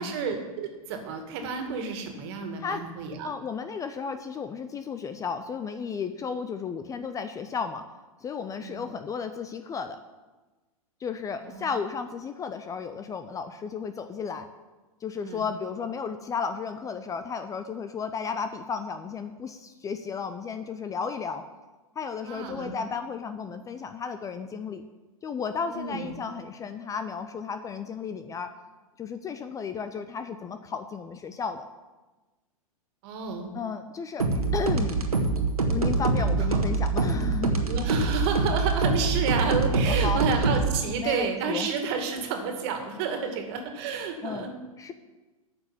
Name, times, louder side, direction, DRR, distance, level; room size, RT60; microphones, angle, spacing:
voice 1, 0.0-3.3 8.6-8.8 11.4-11.7 15.2-15.4 22.2-22.8 25.7-26.1 33.0-33.5 36.5-36.6 37.7-44.5, right 5 dB, 45° right, 4 dB, 2.1 m, -30 dB
voice 2, 3.2-7.8 8.2-10.0 11.0-14.5 15.0-21.4 22.0-24.8 25.2-28.5 29.0-31.7 33.5-34.2 34.5-35.1 35.7-37.7 39.9-40.2 41.0-41.7 43.1-43.3 44.2-44.9, left 6 dB, 15° left, 9 dB, 0.6 m, -33 dB
sound 1, 34.2-40.7, right 3 dB, 80° right, 1.5 m, -25 dB
9.5 x 7.1 x 8.9 m, 1.2 s
figure-of-eight pair, 100°, 19 cm